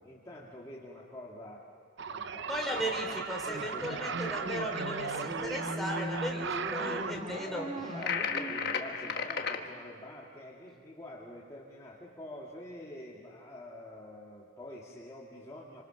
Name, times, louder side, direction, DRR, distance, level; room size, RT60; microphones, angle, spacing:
voice 1, 0.0-1.6 2.1-2.8 3.1-4.6 5.5-5.6 6.7-15.8, left 1 dB, 15° left, -6 dB, 2.1 m, -47 dB
sound 1, 2.0-7.1, right 5 dB, 60° right, 0.7 m, -37 dB
voice 2, 2.5-7.7, equal, ahead, -1 dB, 3.7 m, -36 dB
sound 2, 4.7-9.8, right 1 dB, 35° right, 2.1 m, -39 dB
sound 3, 8.0-9.6, left 6 dB, 50° left, 1.4 m, -33 dB
28.5 x 26.0 x 6.1 m, 2.2 s
head